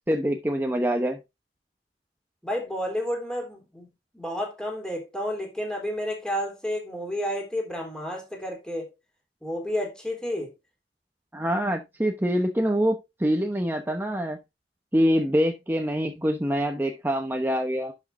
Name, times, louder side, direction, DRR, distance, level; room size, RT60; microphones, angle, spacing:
voice 1, 0.1-1.2 11.3-14.4 14.9-17.9, equal, 10° right, 0.9 m, -25 dB
voice 2, 2.4-3.9 4.1-8.9 9.4-10.5, equal, 5° left, 3.5 m, -31 dB
11.0 x 6.4 x 2.6 m
head